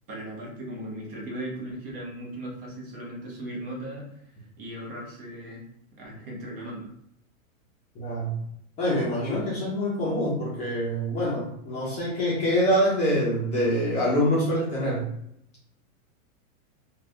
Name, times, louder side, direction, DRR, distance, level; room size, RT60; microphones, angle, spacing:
voice 1, 0.1-4.0 4.6-5.7 6.0-6.9, right 1 dB, 40° right, -2 dB, 0.9 m, -37 dB
voice 2, 8.0-8.4 8.8-15.1, equal, 15° left, -8 dB, 0.5 m, -25 dB
3.1 x 2.3 x 2.6 m, 0.73 s
supercardioid pair, 150°, 43 cm